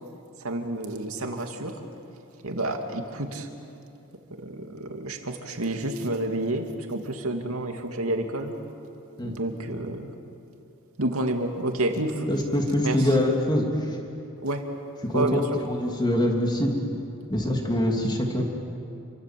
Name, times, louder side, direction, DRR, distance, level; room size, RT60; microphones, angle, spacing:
voice 1, 0.4-1.7 2.4-3.5 4.4-8.5 9.2-10.1 11.0-12.3 12.8-13.0 14.4-14.7 15.1-15.5, right 1 dB, 75° right, 4 dB, 2.5 m, -29 dB
voice 2, 12.2-13.7 15.0-16.8 17.3-18.4, left 1 dB, 20° left, 1 dB, 3.1 m, -24 dB
29.0 x 24.0 x 7.7 m, 2.8 s
head